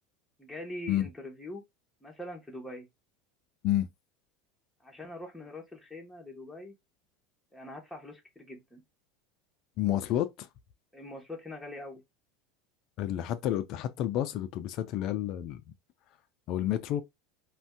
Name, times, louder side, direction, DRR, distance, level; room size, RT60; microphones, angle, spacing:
voice 1, 0.4-1.6 2.0-2.9 4.8-6.7 7.5-8.8 10.9-12.0, left 1 dB, 5° left, 1.0 m, -43 dB
voice 2, 9.8-10.5 13.0-15.6 16.5-17.0, left 12 dB, 55° left, 0.4 m, -30 dB
2.6 x 2.2 x 3.4 m
supercardioid pair, 110°, 0 cm